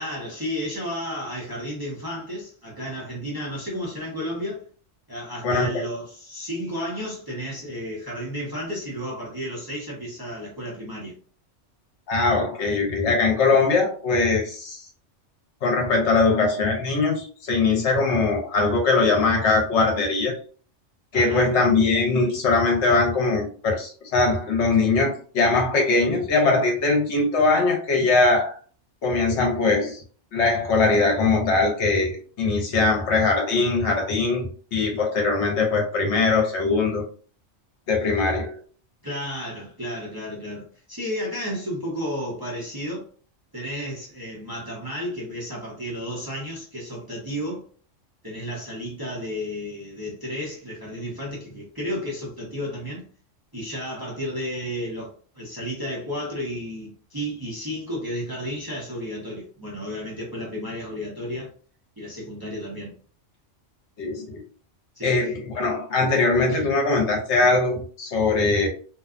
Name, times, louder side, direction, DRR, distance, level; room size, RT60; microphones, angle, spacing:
voice 1, 0.0-4.7 5.1-11.1 21.1-21.5 39.0-43.1 43.5-47.6 48.2-53.0 53.5-61.5 62.0-62.9 65.0-65.2, equal, 20° right, 0.7 m, -32 dB
voice 2, 5.4-5.8 12.1-14.8 15.6-20.3 21.1-28.5 29.0-30.0 30.3-34.5 34.7-37.0 37.9-38.6 64.0-64.4 65.0-68.7, left 3 dB, 70° left, 1.0 m, -21 dB
2.6 x 2.2 x 2.4 m
omnidirectional pair, 1.3 m